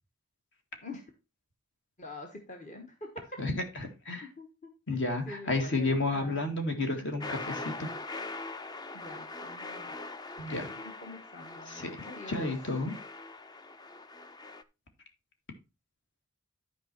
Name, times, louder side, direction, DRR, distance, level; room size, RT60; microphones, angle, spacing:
voice 1, 2.0-3.0 3.7-3.8 4.2-5.0 5.2-7.2 8.9-10.0 10.5-12.5, left 2 dB, 35° left, 2 dB, 1.3 m, -46 dB
voice 2, 3.4-4.3 4.9-7.9 10.4-10.7 11.7-11.9 12.3-13.0, left 2 dB, 55° left, 5 dB, 2.0 m, -31 dB
sound 1, 7.2-14.6, left 3 dB, 20° left, 0.4 m, -42 dB
11.5 x 4.9 x 4.4 m, 0.28 s
head